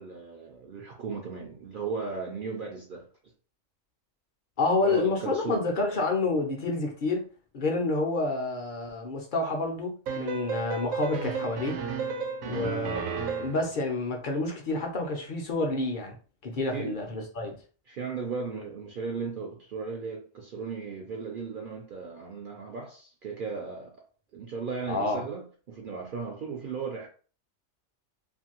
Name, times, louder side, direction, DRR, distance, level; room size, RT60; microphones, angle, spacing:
voice 1, 0.0-3.0 4.8-5.7 12.4-12.8 16.7-17.0 17.9-23.9 24.3-27.1, right 5 dB, 60° right, 0.5 m, -36 dB
voice 2, 4.6-7.2 7.5-11.8 12.5-13.0 13.4-16.1 16.4-17.5 24.9-25.2, left 2 dB, 50° left, 0.6 m, -29 dB
sound 1, 10.1-13.7, right 4 dB, 80° right, 1.0 m, -33 dB
2.6 x 2.6 x 2.9 m
omnidirectional pair, 1.4 m